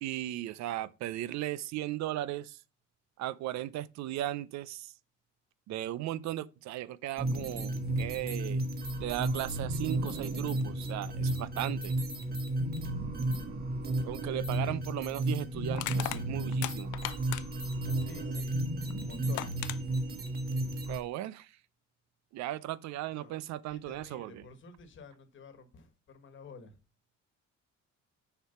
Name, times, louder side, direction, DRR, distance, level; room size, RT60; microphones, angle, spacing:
voice 1, 0.0-2.6 3.2-4.9 5.7-8.6 9.0-12.0 14.0-16.9 20.9-21.5 22.3-24.5, right 14 dB, 70° right, 0.5 m, -36 dB
sound 1, 7.2-21.0, right 1 dB, 35° right, 1.3 m, -33 dB
Crushing, 14.4-14.5 15.7-17.7 18.9-19.0 19.4-19.8, left 17 dB, 90° left, 0.5 m, -37 dB
voice 2, 14.6-15.1 18.0-18.5 19.0-19.5 23.2-23.4 23.7-26.7, left 3 dB, 40° left, 1.4 m, -50 dB
6.7 x 4.8 x 5.6 m
cardioid pair, 155°, 29 cm